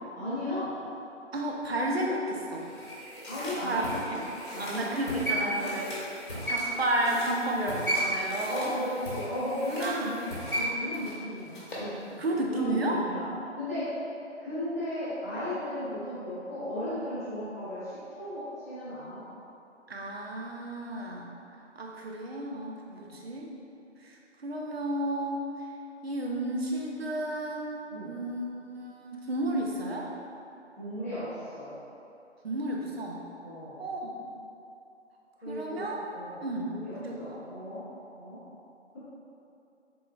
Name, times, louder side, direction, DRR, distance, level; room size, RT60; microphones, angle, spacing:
voice 1, 0.1-0.7 3.3-4.2 4.5-5.0 5.3-5.6 7.3-7.4 8.5-13.2 13.5-13.9 14.4-19.2 22.9-23.2 27.9-28.1 30.7-31.7 33.4-33.8 35.4-35.9 36.1-37.8 38.2-38.4, left 1 dB, 15° left, -17 dB, 0.7 m, -35 dB
voice 2, 1.3-2.7 3.6-3.9 4.2-4.3 4.6-6.0 6.5-8.7 9.8-10.2 12.2-13.0 19.9-21.3 21.8-23.5 24.0-25.4 26.0-30.1 32.4-33.2 33.8-34.1 35.5-36.0 36.4-36.7 37.0-37.5, right 1 dB, 55° right, -1 dB, 0.6 m, -32 dB
sound 1, 2.5-11.9 12.2-12.3, right 1 dB, 45° left, 0.9 m, -35 dB
3.8 x 3.5 x 2.2 m, 2.7 s
figure-of-eight pair, 160°, 36 cm